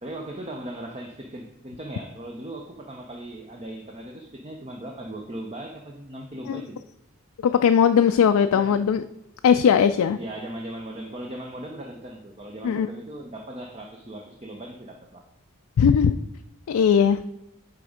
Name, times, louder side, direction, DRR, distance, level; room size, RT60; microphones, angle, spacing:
voice 1, 0.0-6.9 8.5-8.8 10.2-15.3, right 1 dB, 25° right, 2 dB, 0.6 m, -38 dB
voice 2, 7.4-9.0 9.4-10.2 12.6-12.9 15.8-16.2 16.7-17.2, left 7 dB, 85° left, 8 dB, 0.3 m, -19 dB
9.2 x 3.5 x 4.9 m, 0.88 s
head